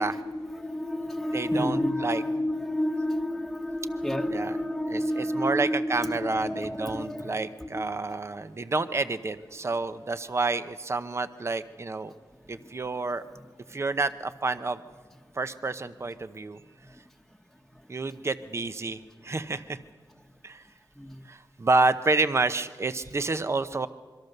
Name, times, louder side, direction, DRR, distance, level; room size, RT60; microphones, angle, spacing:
voice 1, 0.0-7.9 12.5-12.7 13.7-13.8 21.0-21.2, left 1 dB, ahead, 3 dB, 1.2 m, -30 dB
voice 2, 1.3-2.2 4.3-4.5 4.9-12.1 12.5-13.2 13.7-14.8 15.3-16.6 17.9-19.8 20.4-20.6 21.3-23.9, right 3 dB, 30° right, 11 dB, 0.8 m, -29 dB
25.5 x 23.5 x 6.7 m, 1.5 s
wide cardioid pair, 130°, 9 cm